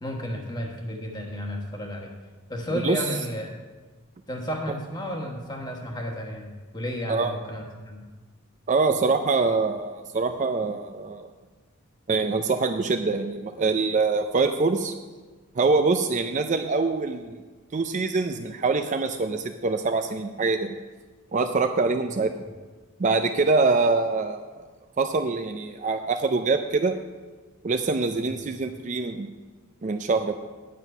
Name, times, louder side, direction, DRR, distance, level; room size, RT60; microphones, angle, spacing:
voice 1, 0.0-2.1 2.5-3.5 4.3-8.0 28.2-28.3, equal, 20° left, 1 dB, 1.4 m, -32 dB
voice 2, 8.7-11.3 12.1-14.9 15.6-17.4 17.7-20.8 21.3-22.3 23.0-24.7 25.0-27.0 27.6-29.3 29.8-30.3, right 3 dB, 35° right, 7 dB, 0.4 m, -24 dB
9.4 x 7.9 x 5.5 m, 1.3 s
head